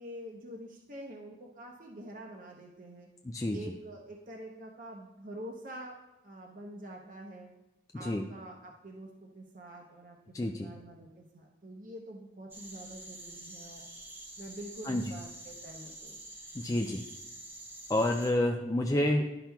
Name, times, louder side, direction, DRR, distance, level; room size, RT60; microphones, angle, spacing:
voice 1, 0.0-3.1 3.5-6.0 6.2-7.5 7.9-13.9 14.4-16.2, right 1 dB, 45° right, -1 dB, 0.8 m, -46 dB
voice 2, 3.2-3.6 8.0-8.2 10.3-10.7 14.9-15.1 16.5-17.0 17.9-19.4, left 1 dB, 20° left, 2 dB, 0.3 m, -29 dB
sound 1, 12.5-18.3, right 1 dB, 10° right, 0.8 m, -47 dB
12.0 x 5.8 x 2.3 m, 0.94 s
head